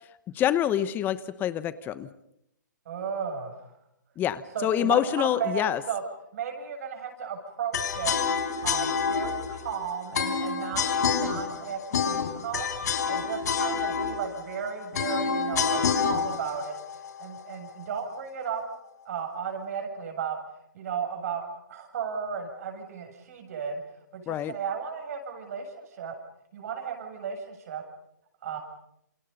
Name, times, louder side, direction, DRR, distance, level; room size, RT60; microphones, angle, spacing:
voice 1, 0.3-2.1 4.2-5.8 24.3-24.6, left 11 dB, 20° left, 16 dB, 0.9 m, -26 dB
voice 2, 2.9-3.7 4.5-6.0 6.3-8.2 8.6-12.7 13.1-16.8 17.2-18.6 19.1-20.4 20.7-21.4 21.7-23.8 24.1-26.2 26.5-27.8 28.4-28.6, right 7 dB, 50° right, 4 dB, 7.6 m, -34 dB
sound 1, 7.7-17.8, left 6 dB, 60° left, 3.9 m, -28 dB
28.5 x 28.0 x 5.4 m, 0.78 s
figure-of-eight pair, 130°, 10 cm